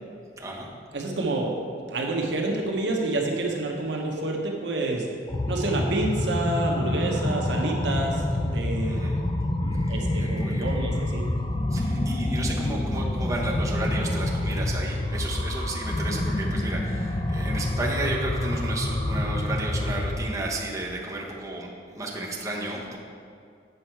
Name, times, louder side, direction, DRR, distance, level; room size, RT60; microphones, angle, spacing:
voice 1, 0.4-0.7 8.8-9.1 10.2-10.7 11.7-23.0, right 2 dB, 20° right, -4 dB, 1.0 m, -33 dB
voice 2, 0.9-5.1 5.5-9.0 9.6-11.3, right 2 dB, 75° right, 0 dB, 1.0 m, -28 dB
sound 1, 5.3-20.3, left 1 dB, 25° left, 0.5 m, -27 dB
8.0 x 5.5 x 4.5 m, 2.4 s
head